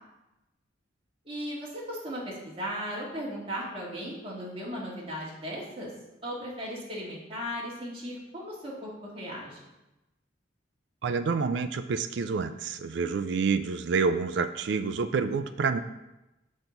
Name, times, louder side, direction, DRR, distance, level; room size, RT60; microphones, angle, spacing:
voice 1, 1.3-5.9 6.2-9.6, equal, 30° right, -5 dB, 2.1 m, -37 dB
voice 2, 11.0-15.8, right 5 dB, 65° right, 9 dB, 0.4 m, -28 dB
6.2 x 5.8 x 5.3 m, 0.98 s
head